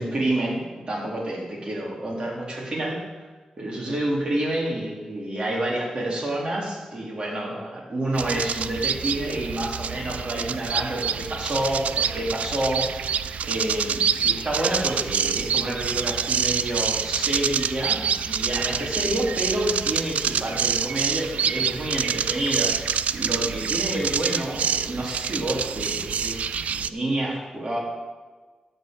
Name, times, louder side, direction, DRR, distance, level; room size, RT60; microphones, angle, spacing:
voice 1, 0.0-3.3 3.6-26.4 26.7-27.8, right 1 dB, 45° right, -3 dB, 3.4 m, -28 dB
sound 1, 8.1-26.9, right 7 dB, 90° right, 0.3 m, -27 dB
12.5 x 4.9 x 7.8 m, 1.4 s
wide cardioid pair, 85°, 2 cm